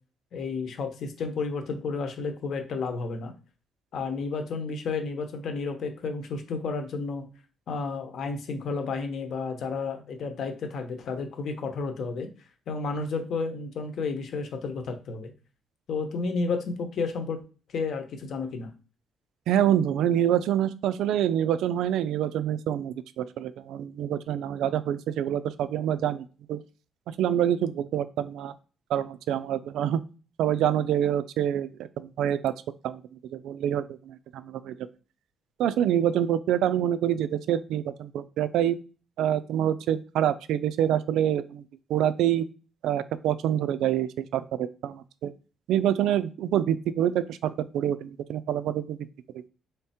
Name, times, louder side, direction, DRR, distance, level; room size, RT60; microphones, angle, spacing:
voice 1, 0.3-3.3 3.9-7.3 7.7-12.3 12.7-15.3 15.9-17.4 17.7-18.7, left 4 dB, 55° left, 6 dB, 0.9 m, -31 dB
voice 2, 19.5-26.6 27.1-28.5 28.9-30.0 30.4-32.5 32.8-33.0 33.3-34.9 35.6-38.8 39.2-41.6 41.9-42.5 42.8-45.3 45.7-49.0, right 10 dB, 90° right, 14 dB, 0.4 m, -26 dB
3.6 x 3.3 x 4.3 m, 0.36 s
cardioid pair, 155°, 0 cm